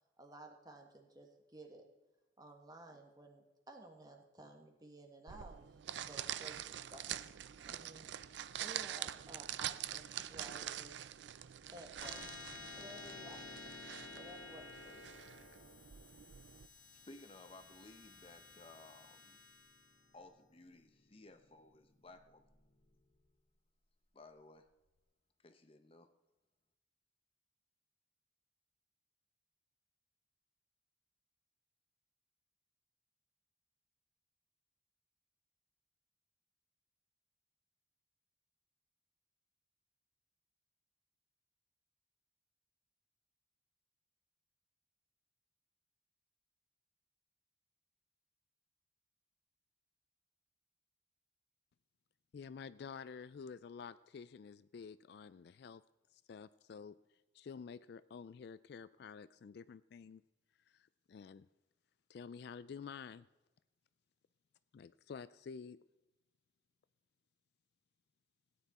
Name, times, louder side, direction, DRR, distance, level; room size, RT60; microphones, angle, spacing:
voice 1, 0.2-1.8 2.4-5.6 6.0-7.0 7.7-8.1 8.6-11.0 11.7-12.4 12.8-13.5 14.1-15.1, right 2 dB, 20° right, 3 dB, 1.5 m, -55 dB
sound 1, 5.3-16.7, right 11 dB, 65° right, 0.4 m, -45 dB
sound 2, 12.0-22.8, left 3 dB, 75° left, 1.7 m, -53 dB
voice 2, 16.7-19.4 20.1-22.4 24.1-24.7 25.4-26.1, left 2 dB, 30° left, 8 dB, 0.7 m, -58 dB
voice 3, 52.3-55.8 56.1-57.0 57.3-60.2 60.7-61.5 62.1-63.3 64.7-65.8, left 6 dB, 55° left, 15 dB, 0.3 m, -50 dB
16.5 x 9.5 x 4.1 m, 1.1 s
head